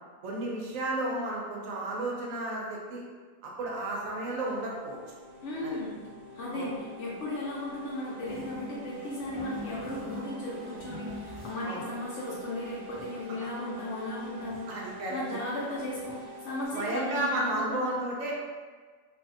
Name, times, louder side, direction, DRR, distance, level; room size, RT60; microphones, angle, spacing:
voice 1, 0.2-3.0 3.4-5.0 5.6-5.8 6.5-6.7 11.6-11.8 14.7-15.2 16.7-18.3, right 1 dB, 70° right, -3 dB, 0.9 m, -32 dB
sound 1, 3.6-16.7, equal, 85° left, 1.1 m, -48 dB
voice 2, 5.4-5.9 6.3-14.7 15.1-17.9, left 1 dB, 65° left, -5 dB, 0.8 m, -36 dB
sound 2, 8.2-11.8 12.2-12.3 12.5-13.3 13.8-13.9 14.1-14.8 15.3-15.4 15.7-16.4 16.9-17.0 17.2-17.3, left 2 dB, 45° right, 0.6 m, -45 dB
2.6 x 2.3 x 2.4 m, 1.5 s
omnidirectional pair, 1.5 m